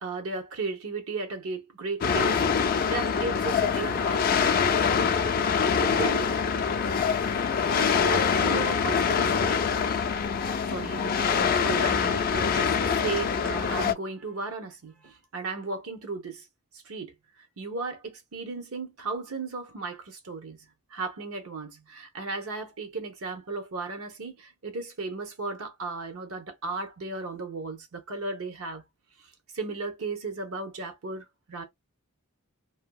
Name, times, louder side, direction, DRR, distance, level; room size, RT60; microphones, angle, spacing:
voice 1, 0.0-2.4 2.8-4.6 5.5-6.4 7.7-9.8 10.7-16.4 16.8-17.1 17.6-20.6 20.9-28.8 29.5-31.6, right 3 dB, 70° right, 0.9 m, -35 dB
sound 1, 2.0-13.9, left 6 dB, 40° left, 0.3 m, -25 dB
2.7 x 2.7 x 2.3 m
head